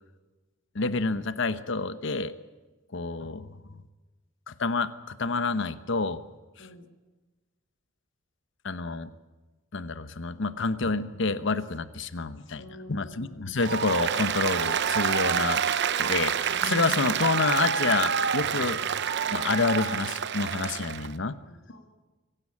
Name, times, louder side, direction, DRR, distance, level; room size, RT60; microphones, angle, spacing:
voice 1, 0.7-2.3 2.9-3.6 4.5-6.2 8.6-9.1 9.7-12.6 12.9-15.6 16.0-18.9 19.3-21.4, left 3 dB, 65° left, 13 dB, 1.0 m, -28 dB
voice 2, 12.5-13.4 21.5-21.8, left 2 dB, 80° left, 2 dB, 2.6 m, -48 dB
Applause, 13.6-21.1, right 7 dB, 55° right, 0.8 m, -27 dB
23.5 x 16.5 x 8.6 m, 1.2 s
head